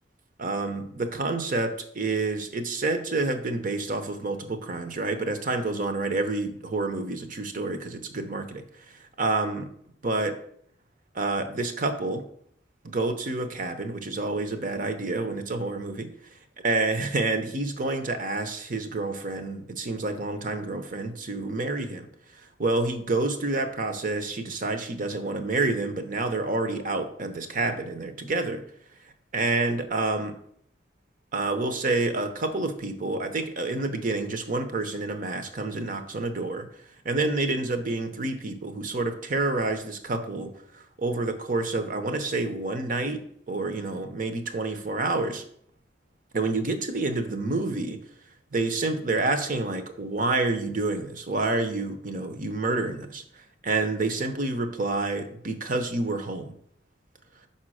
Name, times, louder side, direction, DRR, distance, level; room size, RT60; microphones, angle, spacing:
voice 1, 0.4-8.6 9.2-9.7 10.0-10.3 11.1-12.2 12.8-16.1 16.6-22.1 22.6-28.6 29.3-30.3 31.3-36.7 37.0-40.5 41.0-43.2 43.5-45.4 46.3-48.0 48.5-53.2 53.6-56.5, right 2 dB, 50° right, 8 dB, 0.8 m, -28 dB
5.6 x 4.3 x 6.3 m, 0.66 s
head